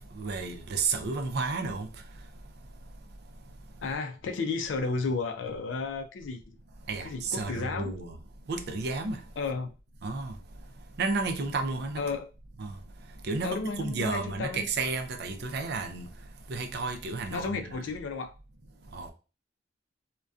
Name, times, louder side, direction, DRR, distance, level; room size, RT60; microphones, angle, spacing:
voice 1, 0.0-1.9 6.9-8.1 8.5-9.2 10.0-10.3 11.0-12.0 12.6-12.8 13.2-16.1 16.5-17.8 18.9-19.1, right 4 dB, 60° right, 0.4 m, -32 dB
voice 2, 3.8-6.4 7.0-7.9 9.4-9.7 12.0-12.3 13.4-14.7 17.3-18.3, left 4 dB, 70° left, 0.4 m, -33 dB
2.5 x 2.2 x 2.3 m
head